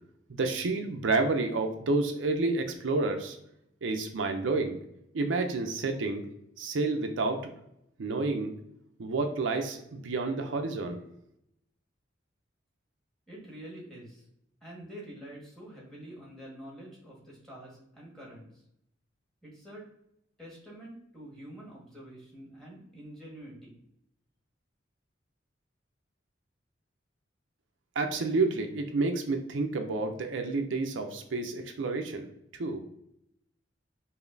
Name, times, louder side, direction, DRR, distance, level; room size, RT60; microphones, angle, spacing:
voice 1, 0.3-3.4 3.8-4.8 5.1-6.3 6.6-7.5 8.0-8.5 9.0-11.0 28.0-32.3 32.6-32.8, right 3 dB, 80° right, 5 dB, 0.5 m, -29 dB
voice 2, 13.3-14.3 14.6-18.6 19.4-19.9 20.4-23.7, right 1 dB, ahead, -4 dB, 1.5 m, -47 dB
5.0 x 2.7 x 2.6 m, 0.77 s
head